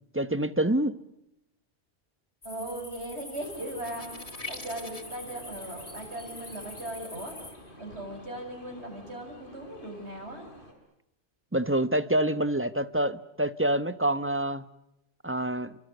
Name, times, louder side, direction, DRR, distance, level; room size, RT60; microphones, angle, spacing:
voice 1, 0.1-1.0 11.5-14.6 15.2-15.7, right 1 dB, 10° right, 0.9 m, -26 dB
sound 1, 2.4-7.5, left 2 dB, 65° left, 4.3 m, -45 dB
voice 2, 2.4-4.1 4.5-7.4 7.8-10.4, right 1 dB, 70° right, 7.7 m, -38 dB
sound 2, 3.4-10.7, left 1 dB, 50° left, 5.1 m, -50 dB
sound 3, 3.8-5.2, left 3 dB, 30° left, 1.9 m, -42 dB
30.0 x 24.5 x 8.0 m
omnidirectional pair, 1.1 m